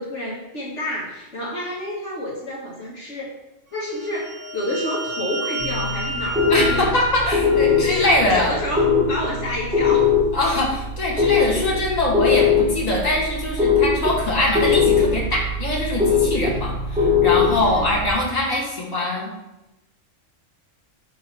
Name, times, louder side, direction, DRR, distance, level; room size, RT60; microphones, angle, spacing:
voice 1, 0.0-3.4 3.7-7.0 7.7-10.2 16.3-16.5 17.6-18.1, left 1 dB, 65° left, -4 dB, 1.8 m, -29 dB
sound 1, 3.9-8.3, equal, 55° right, 0.8 m, -31 dB
sound 2, 5.6-18.1, left 5 dB, 5° right, 0.8 m, -21 dB
voice 2, 6.5-8.6 10.3-19.3, left 1 dB, 30° left, -4 dB, 1.8 m, -22 dB
9.4 x 3.2 x 5.7 m, 0.96 s
omnidirectional pair, 1.3 m